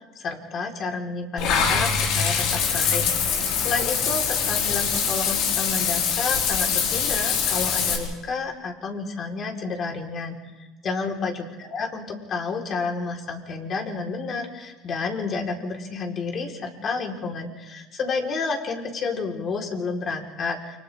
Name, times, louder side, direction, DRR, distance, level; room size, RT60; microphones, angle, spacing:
voice 1, 0.2-10.4 10.8-20.8, left 4 dB, 45° left, 1 dB, 4.3 m, -30 dB
Water / Bathtub (filling or washing), 1.4-8.0, left 7 dB, 65° left, 4.9 m, -23 dB
29.5 x 25.5 x 3.7 m, 1.1 s
supercardioid pair, 90°, 0 cm